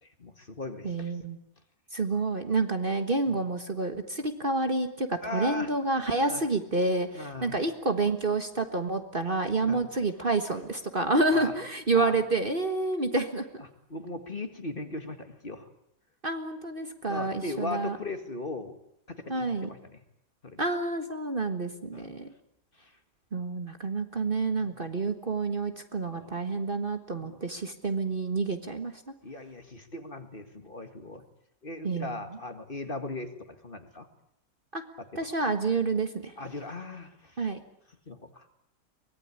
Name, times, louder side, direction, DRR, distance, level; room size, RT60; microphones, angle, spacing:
voice 1, 0.0-1.1 3.3-3.4 5.2-5.7 6.3-6.4 7.2-7.5 9.6-9.8 11.3-11.5 11.9-12.2 13.9-15.7 17.1-18.8 19.1-20.0 20.4-20.6 21.9-22.1 22.8-22.9 24.6-24.8 26.0-26.3 27.2-27.4 29.2-31.2 31.6-34.1 35.0-35.3 36.4-37.4 38.1-38.5, left 2 dB, 35° left, 7 dB, 2.0 m, -38 dB
voice 2, 0.8-1.4 1.9-13.5 16.2-18.0 19.3-19.7 20.6-22.3 23.3-29.1 31.8-32.2 34.7-34.8 35.1-36.3 37.4-37.6, right 3 dB, 35° right, 7 dB, 1.6 m, -29 dB
24.0 x 19.5 x 9.7 m, 0.78 s
omnidirectional pair, 1.7 m